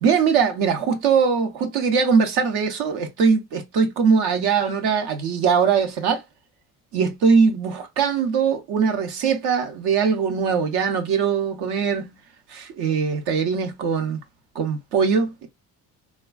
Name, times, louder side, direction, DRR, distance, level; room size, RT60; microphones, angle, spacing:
voice 1, 0.0-6.2 6.9-12.1 12.5-14.2 14.5-15.5, right 6 dB, 75° right, 0.8 m, -21 dB
3.3 x 2.2 x 2.2 m
cardioid pair, 90°, 39 cm